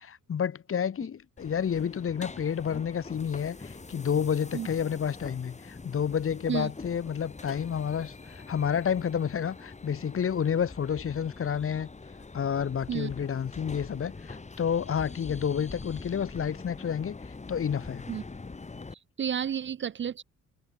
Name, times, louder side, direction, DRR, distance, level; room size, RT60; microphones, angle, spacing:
voice 1, 0.0-11.9 12.3-17.2 17.5-18.0, left 8 dB, 45° left, 1.9 m, -30 dB
sound 1, 1.4-18.9, left 3 dB, 25° left, 4.1 m, -44 dB
voice 2, 18.9-20.2, right 8 dB, 40° right, 0.6 m, -31 dB
cardioid pair, 90°, 30 cm